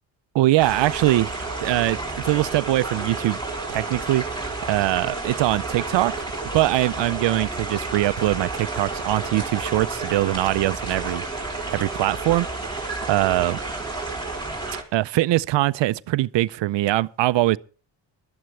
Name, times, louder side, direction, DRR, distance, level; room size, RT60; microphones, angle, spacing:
voice 1, 0.3-3.4 3.7-6.1 6.5-11.2 11.7-13.6 14.9-17.6, right 16 dB, 70° right, 0.6 m, -22 dB
sound 1, 0.6-14.8, right 3 dB, 10° left, 4.8 m, -31 dB
21.5 x 13.0 x 3.3 m
cardioid pair, 100°, 45 cm